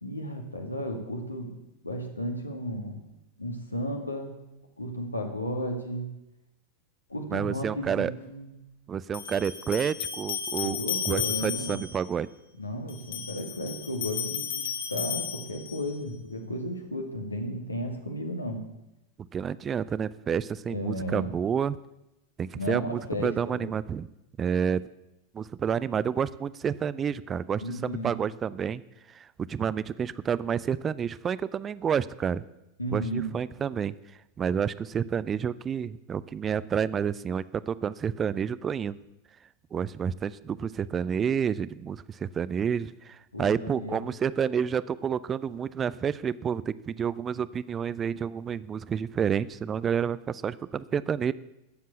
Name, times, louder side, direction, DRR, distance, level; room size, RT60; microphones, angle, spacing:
voice 1, 0.0-1.6 1.8-3.0 3.4-4.3 4.8-6.2 7.1-8.5 10.6-11.8 12.6-18.6 20.7-21.3 22.5-23.7 27.6-28.1 32.8-33.4 43.3-44.1, equal, 85° left, 3 dB, 2.1 m, -34 dB
voice 2, 7.3-8.1 8.9-10.8 11.0-12.3 19.3-21.8 22.4-24.1 24.4-24.8 25.3-28.8 29.1-32.4 32.9-33.9 34.4-39.0 39.7-51.3, right 7 dB, 25° right, 18 dB, 0.5 m, -29 dB
sound 1, 7.8-7.9 9.1-12.0 12.9-15.9, left 8 dB, 60° left, 1.9 m, -34 dB
13.0 x 7.5 x 8.3 m, 0.92 s
figure-of-eight pair, 90°, 0 cm